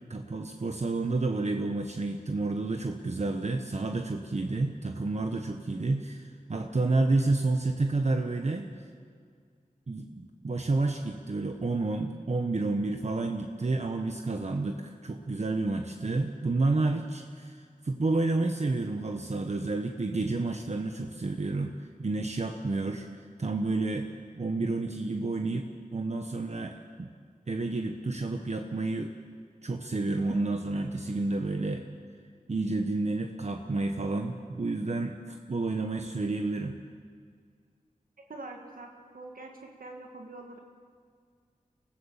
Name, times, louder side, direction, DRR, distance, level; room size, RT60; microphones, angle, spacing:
voice 1, 0.1-8.8 9.9-24.1 24.4-27.1 27.5-29.1 29.6-31.8 32.5-36.8, right 2 dB, 50° right, 4 dB, 1.2 m, -30 dB
voice 2, 38.3-40.6, right 2 dB, 80° right, 1 dB, 1.9 m, -44 dB
24.5 x 14.5 x 7.3 m, 2.1 s
wide cardioid pair, 65°, 14 cm